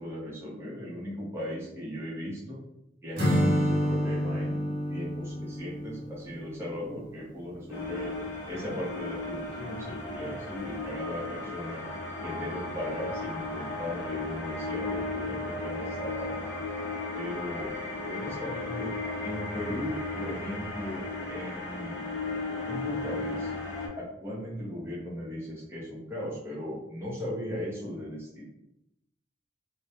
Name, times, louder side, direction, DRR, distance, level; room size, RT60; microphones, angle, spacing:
voice 1, 0.0-2.6 3.0-8.1 8.5-11.8 12.2-16.5 17.1-17.7 18.1-18.9 19.2-22.0 22.7-23.5 24.0-28.5, left 1 dB, 15° right, -7 dB, 0.7 m, -37 dB
Acoustic guitar / Strum, 3.2-7.1, equal, 50° right, 0.7 m, -29 dB
sound 1, 7.7-23.9, left 3 dB, 65° left, 0.6 m, -35 dB
2.2 x 2.1 x 2.8 m, 0.83 s
head